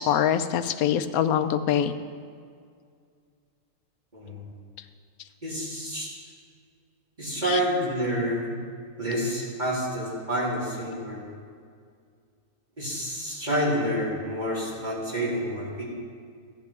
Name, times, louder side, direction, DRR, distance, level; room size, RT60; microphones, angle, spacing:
voice 1, 0.0-1.9 7.5-7.6, left 9 dB, 85° left, 10 dB, 1.1 m, -24 dB
voice 2, 4.1-4.4 5.4-6.1 7.2-8.5 9.0-11.2 12.8-15.8, equal, 30° right, -9 dB, 3.7 m, -28 dB
15.0 x 10.5 x 3.6 m, 2.1 s
omnidirectional pair, 1.5 m